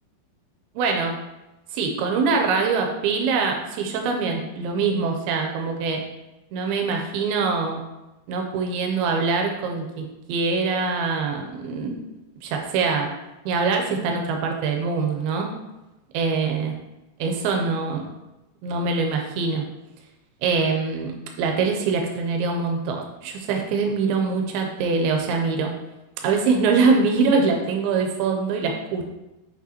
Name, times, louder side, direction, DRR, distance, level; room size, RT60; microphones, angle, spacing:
voice 1, 0.8-1.2 1.7-6.0 6.5-7.8 8.3-12.0 12.4-13.1 13.5-15.5 16.1-16.7 17.2-18.0 18.6-19.6 20.4-21.1 21.4-25.7 26.2-29.1, right 4 dB, 90° right, 2 dB, 2.6 m, -23 dB
6.1 x 6.1 x 2.9 m, 0.99 s
omnidirectional pair, 4.4 m